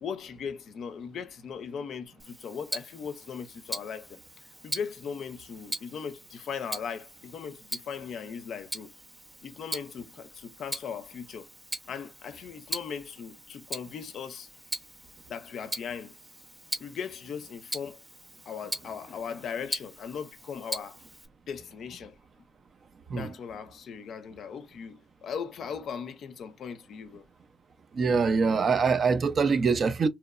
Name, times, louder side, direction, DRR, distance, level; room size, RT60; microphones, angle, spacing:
voice 1, 0.0-4.2 4.6-8.9 9.4-11.5 11.9-14.5 15.3-16.1 16.8-18.0 18.5-21.0 21.5-22.2 23.2-27.2, left 6 dB, 65° left, 0.4 m, -38 dB
Tick-tock, 2.2-21.3, right 1 dB, 5° right, 0.7 m, -41 dB
voice 2, 27.9-30.1, right 5 dB, 45° right, 0.4 m, -24 dB
2.9 x 2.0 x 2.3 m
cardioid pair, 90°, 0 cm